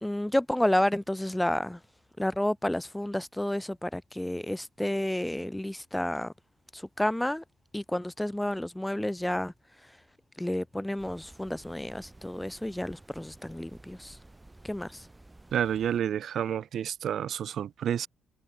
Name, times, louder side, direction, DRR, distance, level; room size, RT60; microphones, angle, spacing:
voice 1, 0.0-1.8 2.2-6.3 6.7-7.4 7.7-9.5 10.4-14.2 14.6-15.0, left 1 dB, 5° left, 0.7 m, -30 dB
sound 1, 11.0-16.0, right 2 dB, 15° right, 2.2 m, -53 dB
voice 2, 15.5-18.1, right 9 dB, 65° right, 0.7 m, -29 dB
cardioid pair, 90°, 0 cm